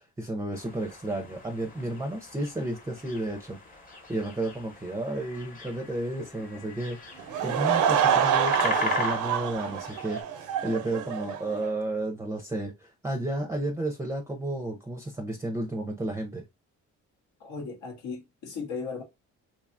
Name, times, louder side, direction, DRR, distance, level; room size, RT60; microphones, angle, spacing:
voice 1, 0.0-3.6 4.1-16.4, right 1 dB, 10° right, 0.4 m, -32 dB
sound 1, 0.5-10.2, left 5 dB, 30° left, 0.8 m, -39 dB
Laughter / Crowd, 7.2-11.7, right 8 dB, 80° right, 0.5 m, -26 dB
voice 2, 17.4-19.0, left 5 dB, 80° left, 0.7 m, -36 dB
2.8 x 2.3 x 2.5 m
cardioid pair, 90°, 30 cm